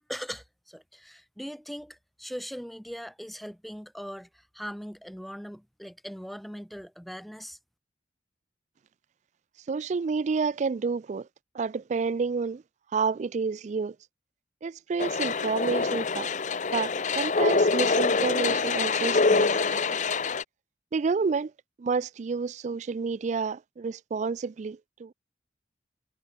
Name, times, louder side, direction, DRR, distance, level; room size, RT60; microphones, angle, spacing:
voice 1, 0.0-7.6, equal, ahead, 1.5 m, -40 dB
voice 2, 9.7-11.3 11.5-12.6 12.9-13.9 14.6-16.3 16.7-20.0 20.9-21.5 21.8-25.1, right 5 dB, 40° right, 0.3 m, -29 dB
sound 1, 15.0-20.4, left 4 dB, 40° left, 0.8 m, -25 dB
head